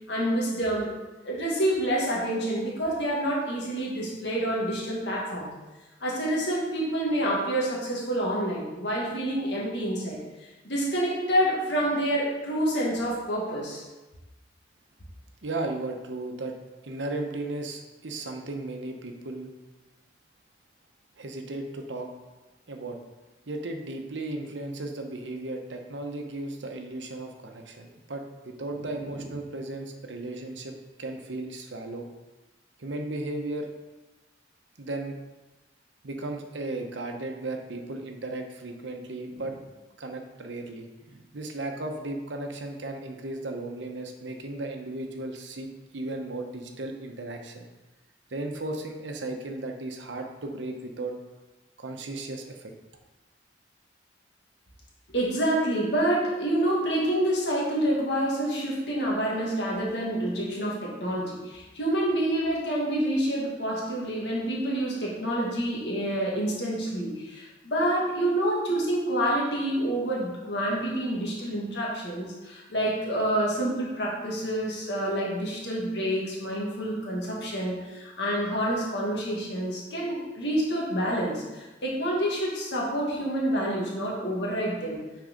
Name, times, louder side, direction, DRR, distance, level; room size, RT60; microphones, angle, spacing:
voice 1, 0.1-0.9 1.2-5.5 6.0-10.2 10.6-13.8 55.1-85.0, right 1 dB, 70° left, -4 dB, 1.9 m, -28 dB
voice 2, 15.4-16.5 16.8-19.5 21.2-22.1 22.7-23.0 23.5-30.7 31.0-32.1 32.8-33.7 34.8-35.1 36.0-39.7 40.0-47.7 48.3-51.1 51.8-52.7, right 2 dB, 80° right, 4 dB, 0.9 m, -35 dB
6.2 x 4.6 x 5.2 m, 1.1 s
head